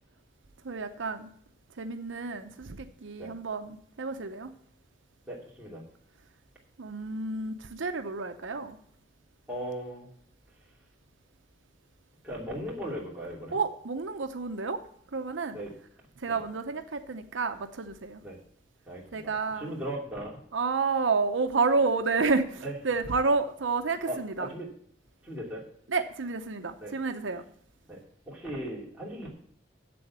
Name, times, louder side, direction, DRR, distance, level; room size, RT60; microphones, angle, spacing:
voice 1, 0.6-1.3 1.8-4.5 6.8-8.8 13.5-14.8 15.1-15.6 16.2-18.2 19.1-19.7 20.5-24.5 25.9-27.4, right 4 dB, 80° right, 8 dB, 0.7 m, -30 dB
voice 2, 5.3-5.8 9.5-10.1 12.2-13.6 15.5-15.7 16.3-16.4 18.2-18.4 18.9-20.4 22.6-22.7 24.1-24.7 25.2-25.6 26.8-26.9 27.9-28.0 28.3-29.3, right 1 dB, 5° right, -5 dB, 2.8 m, -37 dB
7.8 x 7.7 x 7.3 m, 0.62 s
head